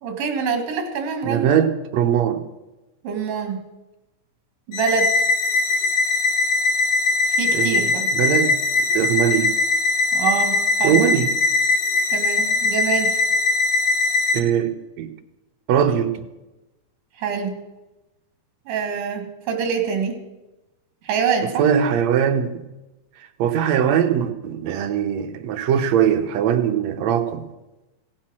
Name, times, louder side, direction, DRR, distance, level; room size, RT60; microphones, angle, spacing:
voice 1, 0.0-1.5 3.0-3.6 4.7-5.1 7.4-8.1 10.1-11.0 12.1-13.2 17.2-17.6 18.7-20.2 21.0-21.6, right 6 dB, 90° right, 5 dB, 3.3 m, -25 dB
voice 2, 1.2-2.4 7.5-8.6 8.9-9.5 10.8-11.3 14.3-15.1 15.7-16.2 21.6-22.6 23.4-27.4, right 9 dB, 70° right, 8 dB, 2.0 m, -21 dB
sound 1, 4.7-14.4, left 3 dB, 65° left, 2.5 m, -20 dB
16.5 x 8.8 x 6.1 m, 1.0 s
omnidirectional pair, 3.6 m